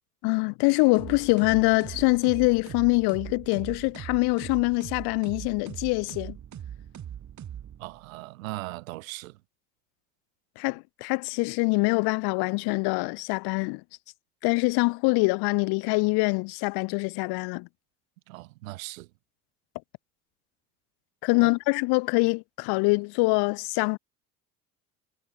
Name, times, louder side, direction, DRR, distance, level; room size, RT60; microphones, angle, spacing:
voice 1, 0.2-6.4 10.6-13.8 14.4-17.7 21.2-24.0, left 28 dB, 70° left, 0.9 m, -24 dB
sound 1, 0.9-8.1, right 9 dB, 45° right, 3.5 m, -41 dB
voice 2, 7.8-9.3 18.3-19.1 21.4-21.5, right 20 dB, 85° right, 1.7 m, -38 dB
hypercardioid pair, 70°, 40 cm